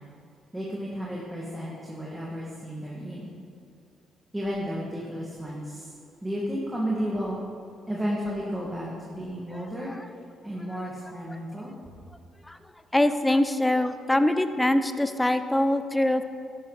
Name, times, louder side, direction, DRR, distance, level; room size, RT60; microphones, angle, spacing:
voice 1, 0.5-3.3 4.3-5.9 6.2-7.4 7.9-9.9 10.4-11.7, equal, 10° right, -5 dB, 2.1 m, -32 dB
voice 2, 12.9-16.2, left 1 dB, 10° left, 10 dB, 0.7 m, -23 dB
12.5 x 11.0 x 4.2 m, 2.5 s
cardioid pair, 90°, 0 cm